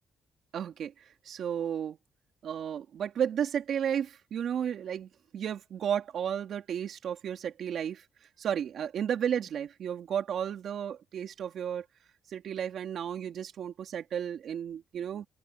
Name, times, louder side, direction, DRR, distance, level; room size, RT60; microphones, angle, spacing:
voice 1, 0.5-2.0 2.4-8.0 8.4-11.9 12.3-15.3, right 8 dB, 65° right, 2.7 m, -33 dB
open air
cardioid pair, 90°, 0 cm